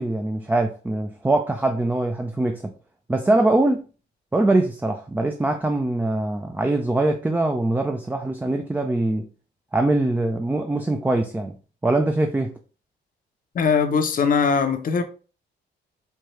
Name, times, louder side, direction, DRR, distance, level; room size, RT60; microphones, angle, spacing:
voice 1, 0.0-2.7 3.1-3.9 4.3-9.3 9.7-11.6 11.8-12.6, right 2 dB, 10° right, 0.4 m, -22 dB
voice 2, 13.5-15.0, left 6 dB, 45° left, 0.7 m, -20 dB
4.5 x 2.3 x 3.0 m
cardioid pair, 90°, 20 cm